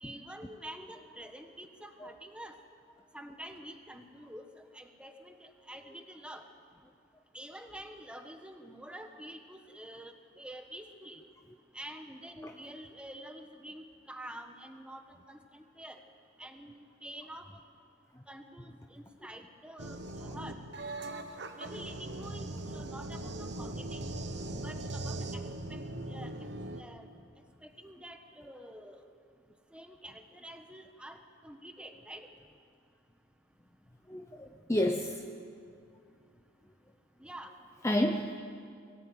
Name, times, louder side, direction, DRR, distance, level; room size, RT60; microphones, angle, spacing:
voice 1, 0.0-2.6 3.1-4.5 4.7-6.4 7.3-11.2 11.7-16.0 16.4-17.5 18.3-20.6 21.5-24.1 24.6-25.4 25.7-25.8 26.1-26.4 26.8-27.1 27.6-29.0 29.7-32.3 37.2-37.5, right 1 dB, 5° right, 5 dB, 1.4 m, -47 dB
sound 1, 19.8-26.8, right 2 dB, 60° right, 1.3 m, -40 dB
voice 2, 34.1-35.3 37.8-38.4, left 1 dB, 15° left, 4 dB, 0.8 m, -31 dB
22.5 x 17.5 x 9.4 m, 2.3 s
head